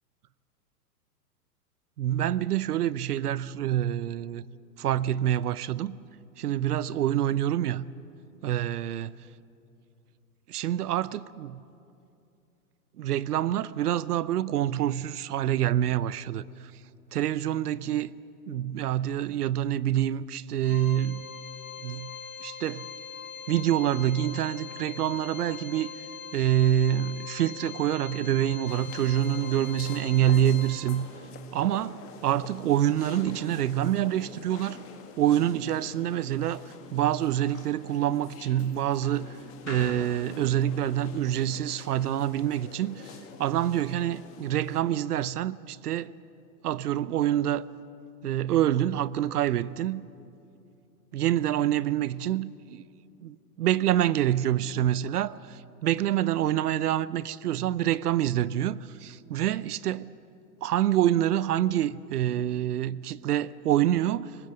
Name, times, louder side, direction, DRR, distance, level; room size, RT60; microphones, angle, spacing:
voice 1, 2.0-4.4 4.8-6.0 6.4-7.9 8.4-9.1 10.5-11.6 13.0-16.7 17.1-18.1 18.5-21.3 21.8-22.1 22.4-22.9 23.5-25.9 26.3-31.1 31.5-34.8 35.2-39.4 39.7-46.2 46.6-47.6 48.2-50.0 51.1-52.8 53.2-60.1 60.6-64.4, right 11 dB, 75° right, 0.8 m, -26 dB
Organ, 20.6-31.3, left 7 dB, 55° left, 4.1 m, -42 dB
sound 1, 28.7-44.8, left 6 dB, 30° left, 2.0 m, -46 dB
20.0 x 16.0 x 9.1 m
hypercardioid pair, 130°, 46 cm